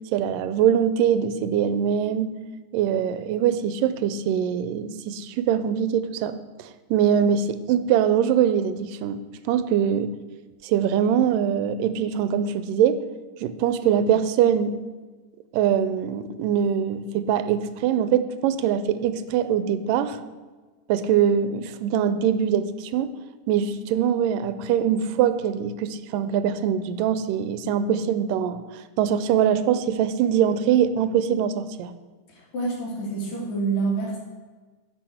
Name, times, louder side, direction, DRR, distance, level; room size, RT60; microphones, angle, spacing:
voice 1, 0.1-2.4 2.7-9.2 9.5-10.2 10.6-13.0 13.4-14.8 15.5-20.2 20.9-23.1 23.5-28.6 29.0-31.9, right 9 dB, 85° right, 13 dB, 2.3 m, -23 dB
voice 2, 32.3-34.2, right 3 dB, 60° left, -2 dB, 3.6 m, -27 dB
9.9 x 6.5 x 7.8 m, 1.3 s
omnidirectional pair, 3.8 m